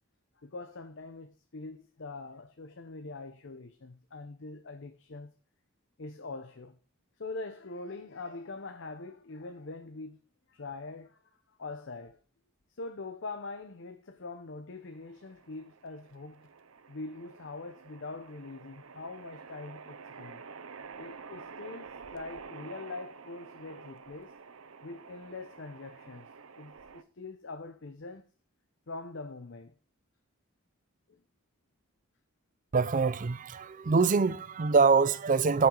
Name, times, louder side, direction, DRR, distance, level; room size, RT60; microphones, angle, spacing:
voice 1, 0.4-5.3 6.0-6.8 7.2-10.2 10.5-11.2 11.6-12.2 12.7-16.5 16.9-20.4 21.0-24.3 24.8-26.3 26.6-28.2 28.9-29.7 31.1-31.2, left 3 dB, 60° left, 0.7 m, -43 dB
sound 1, 14.9-27.0, right 5 dB, 80° right, 0.8 m, -49 dB
voice 2, 32.7-35.7, right 4 dB, 40° right, 0.4 m, -24 dB
13.5 x 5.7 x 3.8 m
head